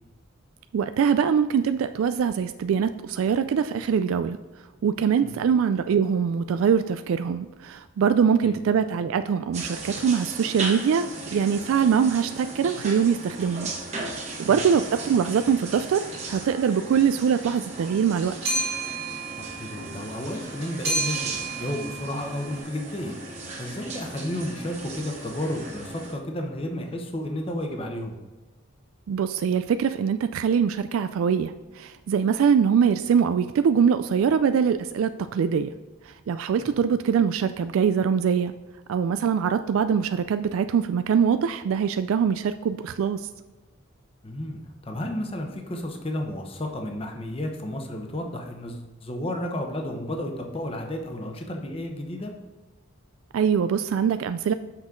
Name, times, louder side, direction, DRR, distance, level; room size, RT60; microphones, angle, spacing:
voice 1, 0.7-4.4 4.8-13.7 14.0-16.0 16.3-18.3 29.1-35.7 36.0-38.5 38.9-43.3 53.3-54.5, right 7 dB, 90° right, 10 dB, 0.3 m, -23 dB
sound 1, 9.5-26.1, right 2 dB, 35° right, 1.1 m, -37 dB
sound 2, 14.8-15.0 16.1-16.5 16.8-22.6, right 3 dB, 60° right, 2.0 m, -33 dB
voice 2, 19.4-21.3 21.6-28.2 44.2-52.3, left 1 dB, 30° left, 3 dB, 0.8 m, -32 dB
6.2 x 5.9 x 3.7 m, 1.2 s
head